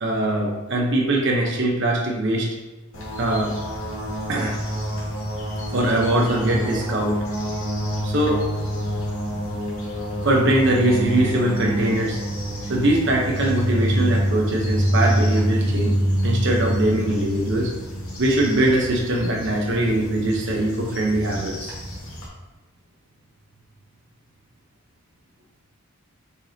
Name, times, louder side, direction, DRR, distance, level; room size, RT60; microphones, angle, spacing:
voice 1, 0.0-2.5 3.2-3.5 4.3-4.6 5.7-7.2 8.0-8.4 10.2-12.2 12.7-15.9 16.2-17.7 18.2-21.7, right 1 dB, 60° right, -1 dB, 1.0 m, -21 dB
sound 1, 2.9-22.3, equal, 85° left, 2.0 m, -27 dB
6.8 x 5.1 x 2.9 m, 1.2 s
head